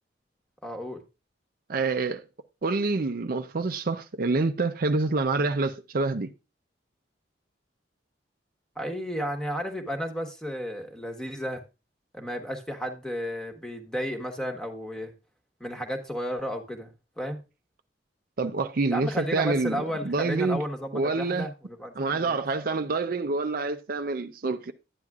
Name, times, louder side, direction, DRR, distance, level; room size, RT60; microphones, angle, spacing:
voice 1, 0.6-1.0 8.8-11.6 12.1-15.1 15.6-17.4 18.9-22.4, equal, 5° left, 1.2 m, -33 dB
voice 2, 1.7-2.2 2.6-6.3 18.4-20.6 20.9-21.5 22.0-24.7, right 3 dB, 50° right, 0.5 m, -27 dB
12.0 x 9.3 x 2.4 m
head